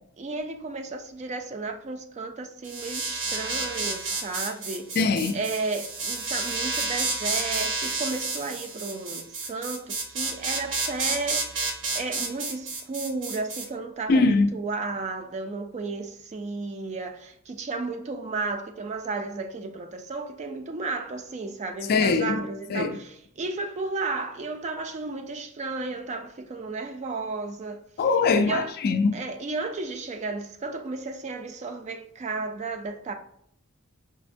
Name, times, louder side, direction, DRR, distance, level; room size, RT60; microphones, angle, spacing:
voice 1, 0.2-4.9 5.3-11.5 11.9-27.8 28.4-28.7 29.1-33.1, right 3 dB, 30° right, 0.3 m, -33 dB
sound 1, 2.6-13.7, right 3 dB, 60° right, 0.7 m, -30 dB
voice 2, 5.0-5.4 14.1-14.5 21.9-22.4 22.7-23.0 28.0-29.2, left 4 dB, 45° left, 0.3 m, -22 dB
5.0 x 2.1 x 2.5 m
head